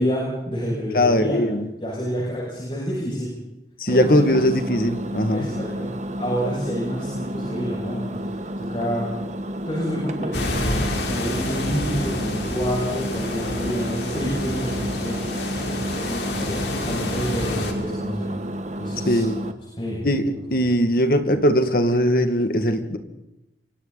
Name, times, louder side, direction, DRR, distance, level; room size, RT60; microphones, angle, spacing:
voice 1, 0.0-1.4 1.8-3.3 3.9-4.3 5.3-8.1 8.6-9.1 9.7-18.4 18.8-19.2 19.7-20.0, equal, 30° left, -5 dB, 7.8 m, -28 dB
voice 2, 0.9-1.6 3.8-5.5 19.1-19.4 20.0-23.0, equal, 55° left, 7 dB, 2.4 m, -20 dB
Engine, 3.9-19.5, equal, 40° right, 1.6 m, -31 dB
sound 1, 10.3-17.7, left 1 dB, 80° left, 4.8 m, -29 dB
29.0 x 24.5 x 4.3 m, 0.92 s
head